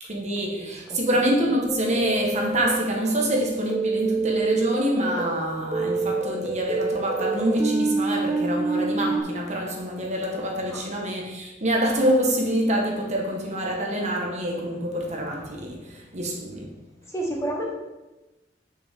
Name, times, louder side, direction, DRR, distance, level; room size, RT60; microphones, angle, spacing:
voice 1, 0.0-16.9, right 1 dB, 40° right, 1.3 m, -26 dB
voice 2, 0.5-1.0 10.7-10.8 17.1-17.7, right 1 dB, 15° left, 1.3 m, -31 dB
sound 1, 1.7-9.2, right 3 dB, 15° right, 1.0 m, -27 dB
8.1 x 6.4 x 3.6 m
head